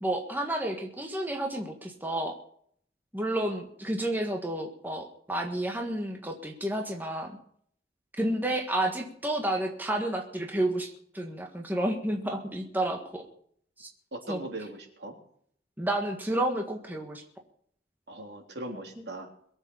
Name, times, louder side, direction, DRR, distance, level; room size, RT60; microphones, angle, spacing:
voice 1, 0.0-2.4 3.1-7.3 8.2-13.2 13.8-13.9 14.3-14.4 15.8-17.2, right 1 dB, 10° right, 2 dB, 1.6 m, -30 dB
voice 2, 14.1-15.1 18.1-19.3, right 1 dB, 70° right, 1 dB, 3.5 m, -39 dB
22.5 x 8.1 x 5.5 m, 0.64 s
head